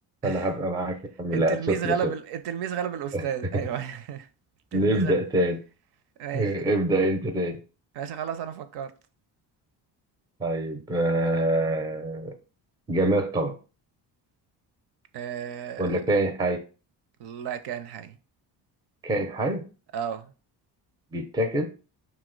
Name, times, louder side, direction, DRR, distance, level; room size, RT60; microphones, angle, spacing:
voice 1, 0.2-2.1 3.1-3.2 4.7-5.6 6.3-7.6 10.4-12.3 12.9-13.6 15.8-16.6 19.0-19.6 21.1-21.7, right 1 dB, 10° right, 0.4 m, -25 dB
voice 2, 1.3-4.3 4.7-5.1 6.2-6.6 7.9-8.9 15.1-16.0 17.2-18.2 19.9-20.3, right 8 dB, 65° right, 0.5 m, -32 dB
2.8 x 2.1 x 3.7 m
cardioid pair, 105°, 42 cm